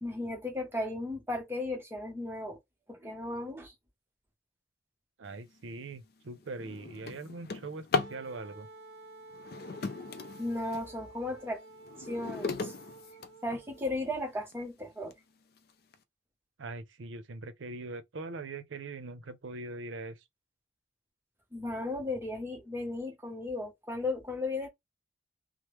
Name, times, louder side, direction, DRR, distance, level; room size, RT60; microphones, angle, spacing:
voice 1, 0.0-2.6 2.9-3.7 10.4-11.6 12.0-12.7 13.4-15.1 21.5-24.7, left 2 dB, 10° right, 0.7 m, -35 dB
voice 2, 5.2-8.7 16.6-20.2, right 3 dB, 90° right, 0.6 m, -42 dB
Drawer open or close, 5.6-5.8 6.3-8.2 9.3-10.9 11.4-13.9 14.5-14.6 15.1-15.2 15.6-15.9, left 4 dB, 50° left, 0.4 m, -37 dB
Wind instrument woodwind instrument, 7.9-13.9, right 2 dB, 55° right, 0.9 m, -51 dB
3.2 x 2.0 x 3.0 m
head